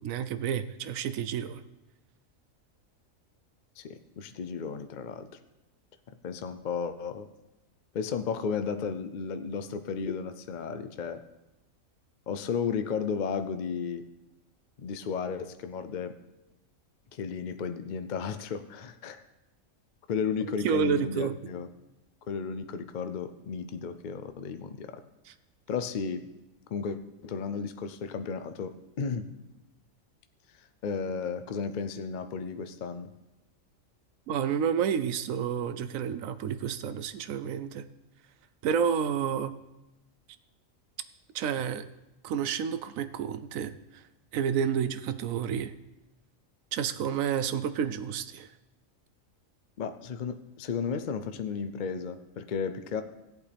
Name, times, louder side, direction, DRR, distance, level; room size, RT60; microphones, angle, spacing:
voice 1, 0.0-1.6 20.6-21.3 34.3-37.8 38.6-39.5 41.3-41.8 42.2-43.7 44.3-45.7 46.7-48.5, right 7 dB, 80° right, 12 dB, 1.0 m, -30 dB
voice 2, 3.8-5.3 6.2-7.3 7.9-11.2 12.3-14.0 14.8-16.2 17.1-19.2 20.1-21.7 22.3-25.0 25.7-26.3 26.7-29.2 30.6-33.1 49.8-53.0, left 6 dB, 55° left, 9 dB, 0.5 m, -34 dB
17.0 x 8.2 x 3.4 m, 0.98 s
omnidirectional pair, 1.4 m